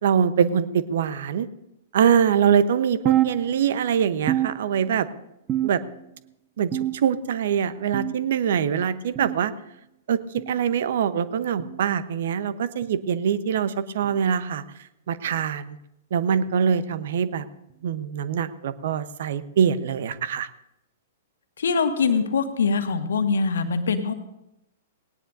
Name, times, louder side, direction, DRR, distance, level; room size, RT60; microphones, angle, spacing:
voice 1, 0.0-1.5 1.9-5.1 5.6-5.8 6.6-6.7 7.0-9.5 10.1-14.6 15.1-15.8 16.1-17.5 17.8-20.5, right 8 dB, 60° right, 15 dB, 0.8 m, -23 dB
sound 1, 3.1-3.9 4.3-5.1 5.5-6.1 6.7-7.3 7.9-8.3 9.2-9.4 10.4-10.6 11.6-11.8 12.8-13.0 14.0-14.2 15.3-15.4 16.5-16.6 17.7-17.8, right 12 dB, 25° right, 0.7 m, -27 dB
voice 2, 21.6-24.1, left 5 dB, 70° left, 8 dB, 1.6 m, -23 dB
18.5 x 18.5 x 2.6 m, 0.85 s
figure-of-eight pair, 110°, 0 cm